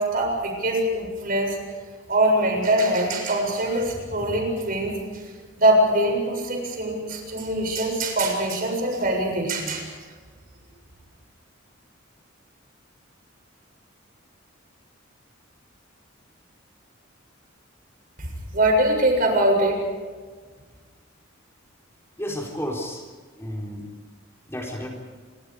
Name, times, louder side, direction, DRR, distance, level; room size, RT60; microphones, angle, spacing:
voice 1, 0.0-1.6 2.1-5.0 5.6-9.9 18.2-19.8, right 1 dB, 45° right, 2 dB, 7.2 m, -23 dB
voice 2, 22.2-23.0 23.4-23.9 24.5-24.9, equal, 15° left, -1 dB, 3.9 m, -31 dB
29.0 x 25.5 x 5.0 m, 1.5 s
head